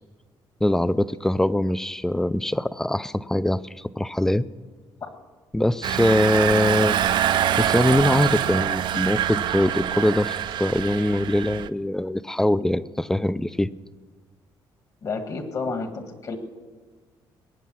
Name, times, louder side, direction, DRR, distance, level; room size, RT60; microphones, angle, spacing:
voice 1, 0.6-4.4 5.5-7.0 7.2-13.7, left 1 dB, 5° left, 17 dB, 0.4 m, -23 dB
Engine, 5.8-11.7, right 10 dB, 60° right, 0.5 m, -25 dB
voice 2, 15.0-16.4, left 4 dB, 45° left, 7 dB, 1.7 m, -30 dB
20.5 x 9.3 x 6.2 m, 1.4 s
cardioid pair, 120°, 9 cm